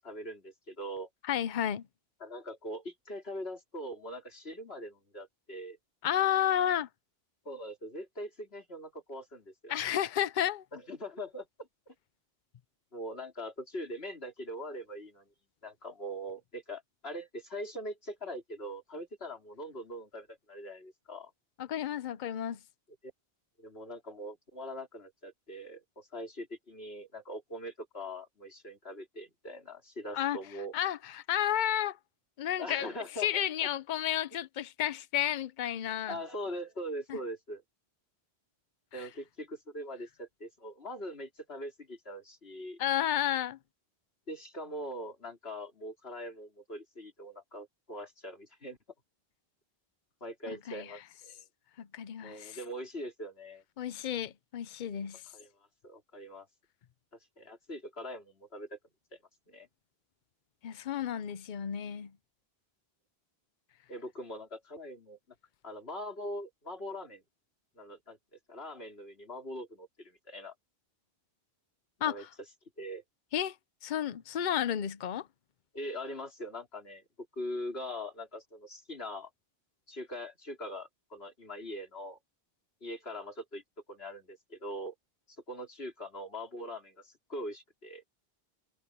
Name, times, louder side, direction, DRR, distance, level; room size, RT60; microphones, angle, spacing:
voice 1, 0.0-1.1 2.2-5.8 7.4-9.8 10.7-11.9 12.9-15.3 15.6-21.3 23.6-30.7 32.6-33.4 36.1-37.6 38.9-42.8 44.3-48.8 50.2-51.4 52.2-53.6 55.3-55.5 55.8-56.5 57.4-58.8 59.1-59.2 59.5-59.7 63.9-65.2 65.6-67.2 67.8-68.2 68.5-70.5 72.0-72.3 72.8-73.0 75.7-77.0 77.4-79.3 79.9-82.2 82.8-83.6 83.9-84.9 85.5-88.0, equal, 75° left, 4.4 m, -42 dB
voice 2, 1.3-1.8 6.0-6.9 9.7-10.6 21.6-22.6 30.1-30.4 30.7-32.0 32.4-32.9 33.2-36.2 37.1-37.2 42.8-43.6 50.5-50.8 51.8-52.6 53.8-55.2 60.6-62.1 72.0-72.1 73.3-73.5 73.8-75.3, left 10 dB, 55° left, 0.8 m, -31 dB
omnidirectional pair, 1.1 m